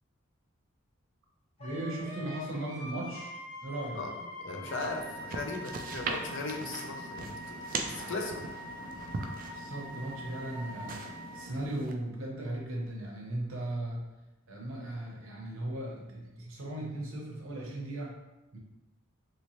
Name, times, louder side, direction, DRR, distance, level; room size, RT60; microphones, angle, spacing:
Wind instrument woodwind instrument, 1.6-11.5, equal, 30° left, 0.8 m, -44 dB
voice 1, 1.6-3.4 3.6-4.0 7.9-8.1 9.5-14.1 14.5-18.2 18.5-18.6, right 1 dB, 70° right, -2 dB, 0.8 m, -37 dB
voice 2, 4.4-8.5, left 3 dB, 60° left, 3 dB, 0.5 m, -38 dB
sound 1, 4.7-11.9, right 3 dB, 40° right, 0.3 m, -40 dB
3.0 x 3.0 x 2.9 m, 1.0 s
head